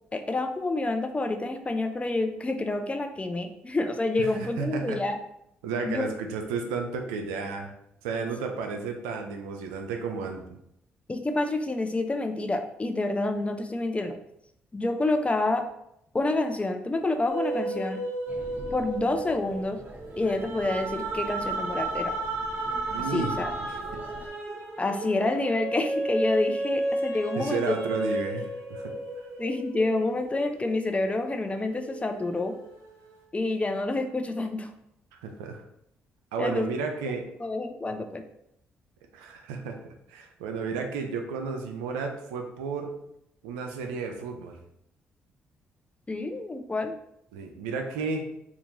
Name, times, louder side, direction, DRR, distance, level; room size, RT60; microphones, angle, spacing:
voice 1, 0.1-5.2 5.8-6.1 11.1-14.2 14.7-15.6 16.1-18.0 18.7-19.8 20.2-22.1 23.1-23.5 24.8-27.7 29.4-32.5 33.3-34.7 36.4-36.7 37.4-38.2 46.1-46.9, left 2 dB, 25° left, 5 dB, 0.5 m, -28 dB
voice 2, 4.2-5.0 5.6-7.7 8.0-10.4 22.9-23.4 23.9-24.0 27.4-28.9 35.1-35.6 36.3-37.3 39.1-42.9 43.4-44.6 47.3-48.2, right 5 dB, 90° right, 4 dB, 0.4 m, -32 dB
sound 1, 17.3-31.0 31.5-33.1, right 2 dB, 65° right, 1.0 m, -33 dB
sound 2, 18.3-24.3, equal, 30° right, 0.8 m, -45 dB
2.9 x 2.4 x 3.8 m, 0.77 s
hypercardioid pair, 55°, 5 cm